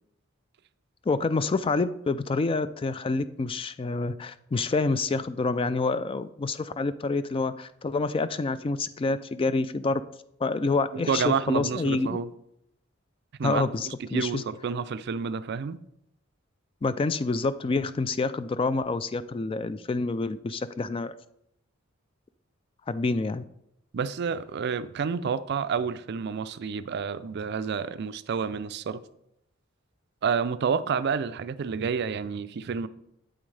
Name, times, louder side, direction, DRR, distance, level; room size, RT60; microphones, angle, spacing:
voice 1, 1.1-10.0 10.4-12.2 13.4-14.4 16.8-21.1 22.9-23.4, left 3 dB, 25° left, 0.3 m, -27 dB
voice 2, 10.9-12.3 13.4-15.8 23.9-29.0 30.2-32.9, right 6 dB, 55° right, 0.4 m, -29 dB
8.9 x 8.5 x 3.3 m
head